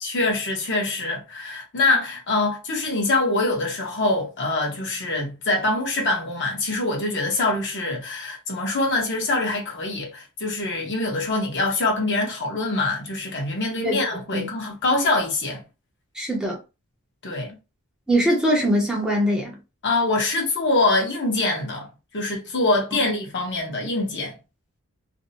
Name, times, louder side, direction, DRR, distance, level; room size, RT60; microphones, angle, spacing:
voice 1, 0.0-15.6 17.2-17.6 19.8-21.9 22.1-24.4, left 2 dB, 55° left, 0.9 m, -24 dB
voice 2, 16.1-16.6 18.1-19.6, equal, 5° right, 0.6 m, -22 dB
2.5 x 2.1 x 2.7 m
head